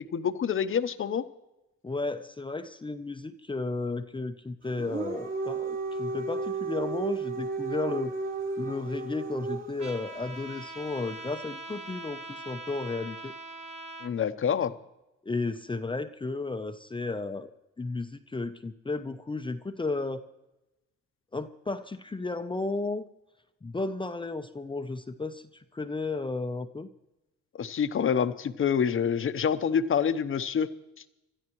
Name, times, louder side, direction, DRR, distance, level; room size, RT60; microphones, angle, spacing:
voice 1, 0.1-1.3 14.0-14.7 27.6-30.7, left 7 dB, 45° left, 11 dB, 0.9 m, -27 dB
voice 2, 1.8-8.1 8.6-13.3 15.2-17.5 17.8-20.2 21.3-23.1 23.6-25.4 25.7-26.9, left 3 dB, 15° left, 8 dB, 0.7 m, -33 dB
Dog, 4.7-9.9, right 3 dB, 40° right, 3.8 m, -33 dB
Trumpet, 9.8-14.1, right 2 dB, 20° right, 1.7 m, -42 dB
26.5 x 13.0 x 3.1 m, 0.95 s
cardioid pair, 90°, 30 cm